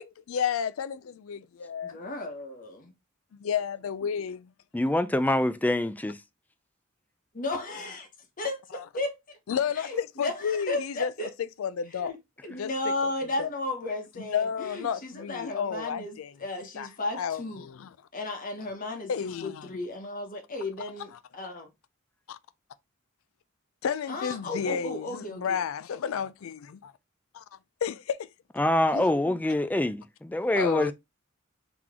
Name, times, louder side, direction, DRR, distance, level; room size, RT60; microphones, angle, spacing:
voice 1, 0.0-2.0 3.3-4.5 8.7-8.8 9.5-11.1 11.6-12.1 12.6-12.7 13.0-13.1 13.4-13.5 14.2-16.3 16.8-16.9 17.1-17.9 19.1-19.7 22.3-22.4 23.8-26.9 27.3-27.4 27.8-28.3 30.5-30.9, left 7 dB, 85° left, 0.4 m, -31 dB
voice 2, 1.8-2.9 7.3-8.1 8.4-9.4 9.8-11.3 11.9-12.2 12.4-17.7 18.1-21.7 24.1-25.6 28.9-29.4, left 2 dB, 45° left, 1.1 m, -34 dB
voice 3, 4.7-6.2 28.6-30.9, left 1 dB, 10° left, 0.3 m, -25 dB
3.8 x 3.0 x 3.6 m
head